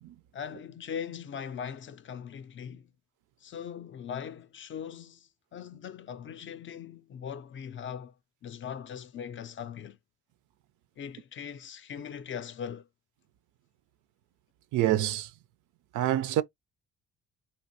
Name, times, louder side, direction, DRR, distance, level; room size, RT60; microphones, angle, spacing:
voice 1, 0.3-2.9 3.4-8.1 8.4-10.0 11.0-12.9, left 8 dB, 40° left, 0.4 m, -40 dB
voice 2, 14.7-15.3 15.9-16.4, right 13 dB, 80° right, 0.5 m, -26 dB
3.4 x 2.5 x 2.7 m
cardioid pair, 90°, 30 cm